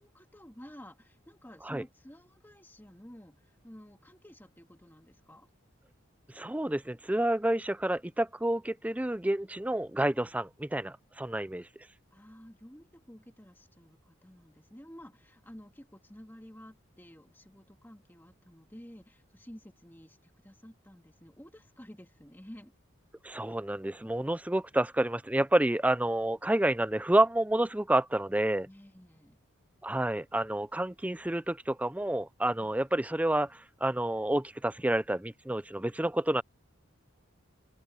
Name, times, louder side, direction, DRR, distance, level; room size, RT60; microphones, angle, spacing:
voice 1, 0.0-5.5 12.1-22.7 23.3-23.6 28.6-29.4 32.6-32.8, equal, 10° left, 2.3 m, -52 dB
voice 2, 6.3-11.7 23.2-28.7 29.8-36.4, right 1 dB, 5° right, 0.5 m, -29 dB
open air
head